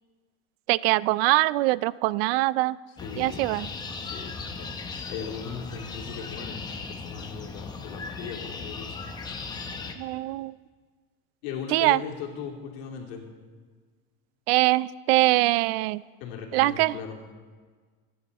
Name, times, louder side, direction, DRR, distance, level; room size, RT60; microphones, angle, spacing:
voice 1, 0.7-2.8 3.2-3.7 10.0-10.6 11.7-12.0 14.5-16.0 16.5-17.0, right 19 dB, 70° right, 20 dB, 0.4 m, -23 dB
voice 2, 3.0-3.6 4.0-4.7 5.1-9.1 11.4-13.3 16.2-17.2, left 6 dB, 75° left, 0 dB, 3.1 m, -38 dB
sound 1, 3.0-9.9, left 4 dB, 15° left, 0.9 m, -37 dB
26.5 x 10.5 x 4.2 m, 1.5 s
cardioid pair, 165°, 31 cm